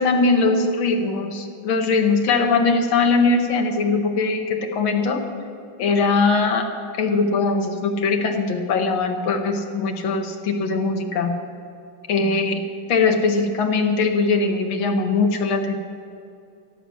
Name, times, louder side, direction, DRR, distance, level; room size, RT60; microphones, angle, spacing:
voice 1, 0.0-5.2 5.8-6.7 7.0-11.3 12.1-12.6 12.9-15.7, left 4 dB, 80° left, 4 dB, 1.9 m, -21 dB
13.5 x 11.0 x 6.2 m, 2.5 s
omnidirectional pair, 2.2 m